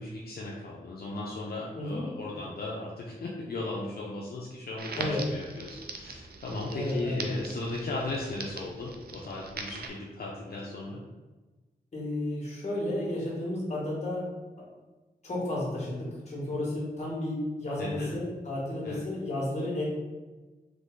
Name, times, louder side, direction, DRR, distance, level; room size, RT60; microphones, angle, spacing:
voice 1, 0.0-11.0 17.8-18.1 18.8-19.0, left 2 dB, 70° left, -4 dB, 0.6 m, -37 dB
Crackle, 4.8-9.9, right 4 dB, 70° right, 0.5 m, -41 dB
voice 2, 6.7-7.5 11.9-14.2 15.2-19.8, left 1 dB, 45° left, -5 dB, 1.4 m, -32 dB
3.9 x 3.1 x 3.7 m, 1.2 s
wide cardioid pair, 135°, 17 cm